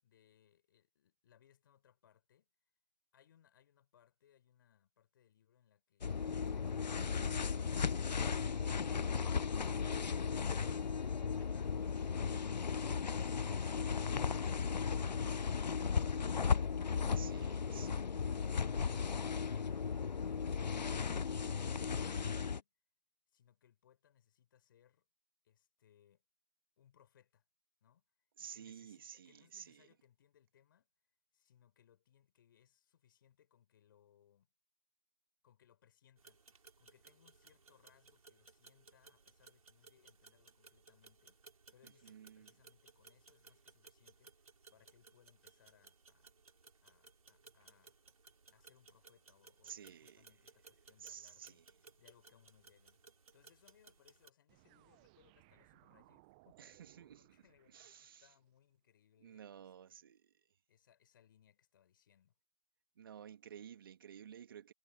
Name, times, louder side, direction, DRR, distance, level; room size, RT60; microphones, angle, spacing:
voice 1, 0.0-2.5 3.1-7.4 9.7-12.4 23.3-25.1 25.4-26.2 26.8-27.4 27.8-28.0 28.4-30.9 31.3-34.5 35.4-36.4 36.8-41.4 41.7-46.3 46.8-48.0 48.5-51.6 52.0-53.0 53.3-56.8 57.2-60.0 60.7-62.3, left 10 dB, 30° left, 4.5 m, -70 dB
sound 1, 6.0-22.6, left 6 dB, 90° left, 0.4 m, -36 dB
voice 2, 17.2-18.1 28.4-29.9 41.8-42.5 49.6-50.3 51.0-51.6 56.6-57.3 57.7-58.3 59.2-60.3 63.0-64.7, right 9 dB, 35° right, 2.3 m, -53 dB
sound 2, 36.2-54.3, right 4 dB, 55° right, 4.2 m, -63 dB
sound 3, 54.5-58.4, right 24 dB, 10° right, 0.7 m, -66 dB
figure-of-eight pair, 150°, 21 cm